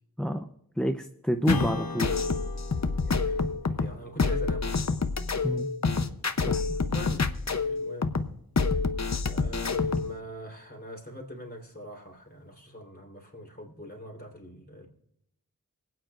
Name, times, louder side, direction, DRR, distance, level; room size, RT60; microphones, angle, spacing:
voice 1, 0.8-2.1 5.4-5.7 6.4-6.6, equal, ahead, 6 dB, 0.6 m, -28 dB
Strum, 1.4-6.4, left 3 dB, 80° left, 1.2 m, -36 dB
sound 1, 1.5-10.1, left 4 dB, 50° left, 0.8 m, -27 dB
voice 2, 3.0-5.0 6.9-7.3 7.6-8.2 8.6-8.8 9.2-14.9, equal, 25° left, 0 dB, 3.6 m, -43 dB
25.5 x 9.1 x 2.5 m, 0.73 s
wide cardioid pair, 55°, 36 cm